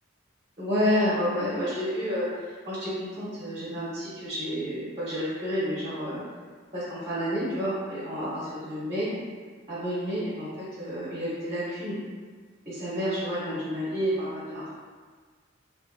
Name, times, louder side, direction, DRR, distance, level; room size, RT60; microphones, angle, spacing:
voice 1, 0.6-6.2 6.7-9.1 9.7-12.0 12.7-14.7, equal, 30° right, -10 dB, 0.8 m, -30 dB
3.2 x 2.5 x 2.6 m, 1.5 s
head